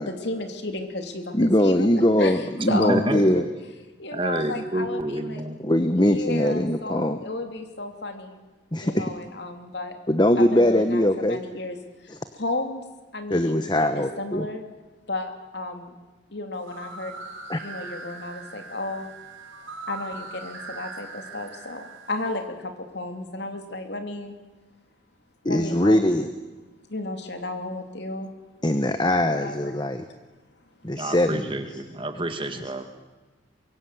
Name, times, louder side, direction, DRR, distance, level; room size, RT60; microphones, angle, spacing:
voice 1, 0.1-1.9 2.2-2.9 3.3-3.4 4.0-5.4 6.0-8.4 8.8-10.0 10.4-11.8 12.0-12.8 13.1-13.7 13.9-14.6 15.1-15.9 16.3-17.2 17.6-19.1 19.9-24.3 25.4-26.3 26.9-28.3 29.2-29.8 30.9-31.0, left 2 dB, 60° left, 6 dB, 3.0 m, -33 dB
voice 2, 1.3-3.5 5.6-7.2 8.7-9.1 10.1-11.4 12.1-12.2 13.3-14.5 17.5-17.6 25.4-26.3 28.6-30.0 30.8-31.5, left 1 dB, 20° left, 9 dB, 1.0 m, -21 dB
voice 3, 2.7-3.4 4.1-5.6 30.9-32.8, right 1 dB, 25° right, 7 dB, 1.9 m, -28 dB
sound 1, 16.5-22.4, right 3 dB, 85° right, 3.9 m, -40 dB
24.5 x 23.0 x 7.8 m, 1.2 s
head